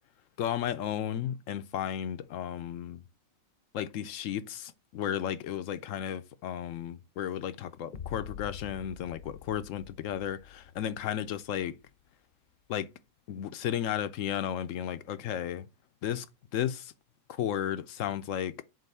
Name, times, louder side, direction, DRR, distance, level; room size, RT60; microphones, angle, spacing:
voice 1, 0.4-3.0 3.7-11.8 12.7-12.9 13.3-15.6 16.0-16.3 16.5-16.9 17.3-18.5, left 10 dB, 75° left, 1.0 m, -34 dB
sound 1, 7.9-11.9, left 8 dB, 45° left, 0.8 m, -46 dB
7.5 x 2.7 x 5.4 m
omnidirectional pair, 1.4 m